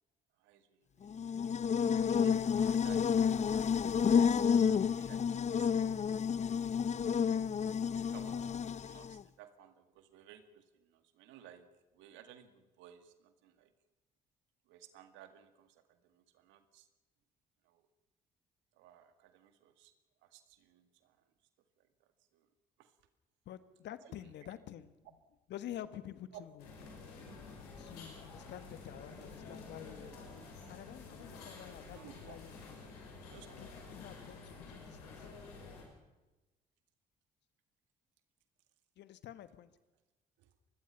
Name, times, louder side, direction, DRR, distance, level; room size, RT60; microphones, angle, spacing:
voice 1, 0.4-1.4 1.7-3.2 3.6-4.0 4.7-5.7 7.9-11.7 11.9-13.7 14.7-16.9 17.6-17.9 18.7-21.2 21.8-22.5 22.8-22.9 24.0-24.5 26.3-26.4 31.9-32.5 33.2-33.6 40.4-40.5, right 10 dB, 75° right, 9 dB, 2.0 m, -58 dB
Buzz, 1.1-9.2, left 7 dB, 35° left, 0.6 m, -30 dB
voice 2, 23.4-24.9 25.5-26.6 27.8-30.1 30.7-32.8 33.4-35.2 39.0-39.7, left 11 dB, 65° left, 13 dB, 1.4 m, -49 dB
sound 1, 26.6-35.8, left 4 dB, 90° left, 5.6 m, -50 dB
25.5 x 21.0 x 5.8 m, 1.1 s
hypercardioid pair, 50°, 20 cm